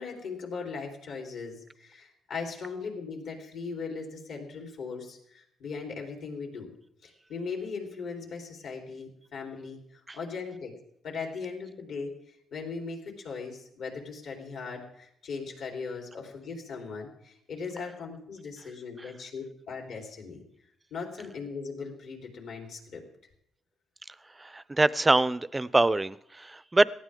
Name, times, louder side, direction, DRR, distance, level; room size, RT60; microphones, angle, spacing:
voice 1, 0.0-6.7 7.0-10.7 11.0-12.1 12.5-20.4 20.9-23.0, left 5 dB, 70° left, 1 dB, 4.1 m, -39 dB
voice 2, 24.4-26.8, right 2 dB, 15° right, 18 dB, 0.5 m, -24 dB
18.0 x 14.0 x 3.7 m, 0.72 s
cardioid pair, 90°, 0 cm